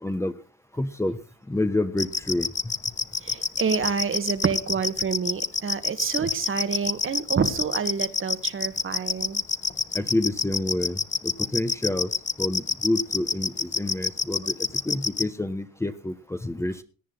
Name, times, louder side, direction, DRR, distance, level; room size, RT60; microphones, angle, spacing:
voice 1, 0.0-0.3 0.8-1.2 1.5-2.5 9.9-12.1 12.4-16.8, left 1 dB, 10° left, 9 dB, 1.0 m, -28 dB
sound 1, 2.0-15.2, left 5 dB, 25° left, 0.7 m, -26 dB
voice 2, 3.2-9.4, right 6 dB, 45° right, 10 dB, 1.5 m, -28 dB
17.5 x 9.4 x 3.9 m, 0.35 s
cardioid pair, 90°, 30 cm